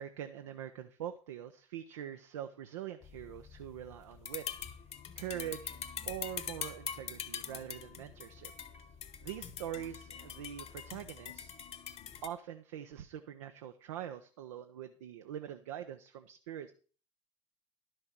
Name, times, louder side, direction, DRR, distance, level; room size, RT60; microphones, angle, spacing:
voice 1, 0.0-4.4 5.2-5.8 6.1-8.5 9.2-11.5 12.2-16.7, right 10 dB, 70° right, 7 dB, 0.8 m, -43 dB
sound 1, 3.0-12.3, left 8 dB, 40° left, 1.3 m, -44 dB
12.0 x 6.4 x 6.1 m, 0.39 s
figure-of-eight pair, 65°, 16 cm